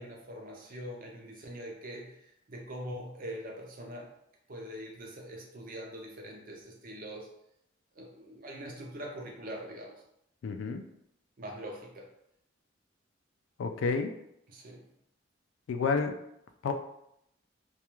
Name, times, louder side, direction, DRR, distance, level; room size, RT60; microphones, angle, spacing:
voice 1, 0.0-4.1 4.5-7.3 7.9-10.0 11.4-12.1 14.5-14.8, equal, 45° right, 1 dB, 0.5 m, -43 dB
voice 2, 10.4-10.8 13.6-14.1 15.7-16.1 16.6-16.7, left 4 dB, 80° left, 7 dB, 0.3 m, -29 dB
2.3 x 2.3 x 2.9 m, 0.77 s
head